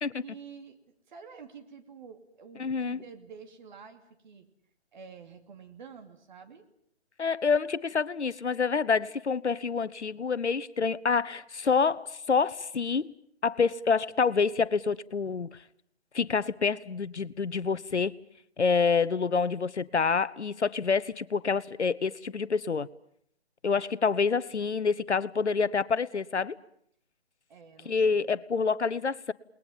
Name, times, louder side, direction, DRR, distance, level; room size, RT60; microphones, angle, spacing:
voice 1, 0.2-4.4 4.9-6.7 27.5-28.3, right 6 dB, 45° right, 2.7 m, -49 dB
voice 2, 2.6-3.0 7.2-13.1 13.4-15.6 16.1-18.1 18.6-22.9 23.6-26.6 27.8-29.3, left 5 dB, 85° left, 1.0 m, -27 dB
29.0 x 20.5 x 7.3 m
figure-of-eight pair, 145°, 33 cm